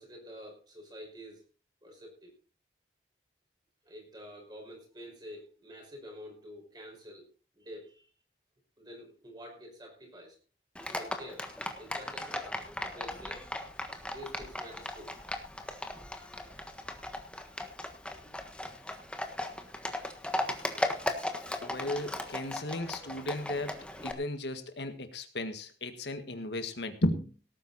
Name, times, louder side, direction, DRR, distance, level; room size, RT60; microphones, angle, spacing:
voice 1, 0.0-1.4 1.8-2.3 3.8-7.3 7.5-8.1 8.8-10.4 10.9-11.5 11.8-12.5 12.9-13.4 14.0-15.1 17.2-17.7 18.2-18.3 19.0-19.1, equal, 25° right, 1 dB, 5.4 m, -48 dB
Livestock farm animals working animals, 10.8-24.1, left 1 dB, 5° left, 1.4 m, -37 dB
voice 2, 21.6-23.8 24.0-27.3, left 1 dB, 75° left, 8 dB, 1.8 m, -35 dB
18.0 x 9.4 x 4.2 m, 0.36 s
head